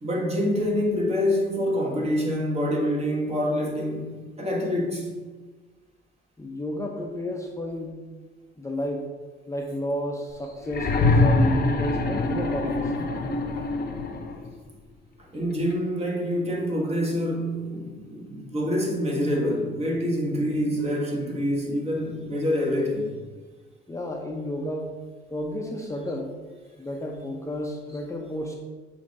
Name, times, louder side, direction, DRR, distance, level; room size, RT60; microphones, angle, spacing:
voice 1, 0.0-5.1 15.3-23.1, equal, 30° right, -1 dB, 1.6 m, -26 dB
voice 2, 6.4-8.0 8.6-9.1 9.5-12.9 23.9-25.0 25.3-26.3 26.8-28.5, left 1 dB, 15° left, 0 dB, 0.7 m, -31 dB
sound 1, 10.7-14.5 15.7-15.8, left 3 dB, 50° left, 0.9 m, -24 dB
7.0 x 2.9 x 5.2 m, 1.3 s
cardioid pair, 90°, 20 cm